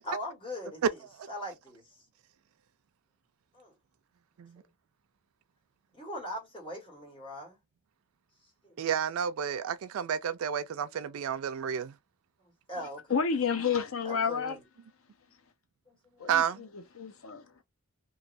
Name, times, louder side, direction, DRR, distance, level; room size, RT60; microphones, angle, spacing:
voice 1, 0.0-1.0 1.3-1.9 3.5-3.7 5.9-7.6 8.6-8.8 12.7-13.2 14.0-14.6 15.9-16.3, left 1 dB, 25° left, 1.6 m, -40 dB
voice 2, 8.8-11.9 16.3-16.6, right 8 dB, 90° right, 0.4 m, -31 dB
voice 3, 12.8-14.6 16.2-17.6, left 6 dB, 80° left, 0.7 m, -31 dB
3.1 x 2.6 x 2.5 m
head